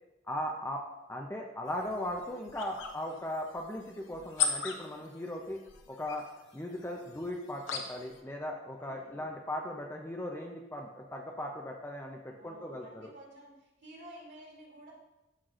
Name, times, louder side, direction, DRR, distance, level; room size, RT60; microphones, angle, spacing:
voice 1, 0.3-0.8 1.1-5.6 5.9-6.3 6.5-13.1, left 1 dB, 10° left, 1 dB, 0.6 m, -38 dB
sound 1, 1.7-8.2, left 7 dB, 75° left, 0.8 m, -39 dB
voice 2, 8.8-9.2 12.3-14.9, right 1 dB, 60° right, -2 dB, 2.4 m, -52 dB
12.5 x 5.8 x 2.5 m, 0.94 s
head